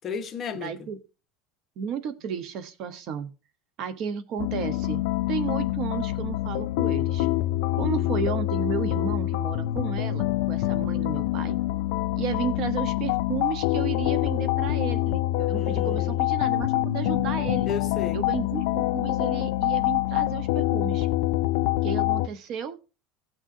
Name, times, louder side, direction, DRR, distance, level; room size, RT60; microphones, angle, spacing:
voice 1, 0.0-0.9 7.8-8.2 15.5-16.3 17.6-18.2, left 6 dB, 25° left, 1.1 m, -35 dB
voice 2, 0.6-1.0 1.8-3.3 3.8-7.3 7.8-11.6 12.2-17.7 18.1-21.1 21.8-22.8, right 7 dB, 45° right, 1.0 m, -33 dB
sound 1, 4.4-22.3, left 16 dB, 70° left, 0.4 m, -26 dB
17.5 x 6.4 x 2.7 m
cardioid pair, 160°, 0 cm